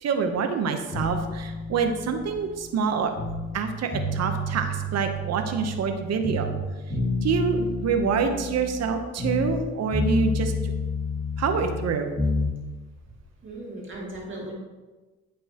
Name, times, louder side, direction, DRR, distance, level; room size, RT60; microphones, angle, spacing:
voice 1, 0.0-3.1 3.5-6.5 7.2-10.5 11.4-12.1, right 5 dB, 55° right, 6 dB, 0.9 m, -26 dB
sound 1, 0.9-3.6 3.9-6.0 6.2-9.7 9.9-12.5, left 2 dB, 35° left, 1.6 m, -30 dB
voice 2, 13.4-14.5, right 1 dB, 40° right, -3 dB, 2.3 m, -37 dB
8.9 x 5.4 x 2.9 m, 1.2 s
cardioid pair, 90°, 30 cm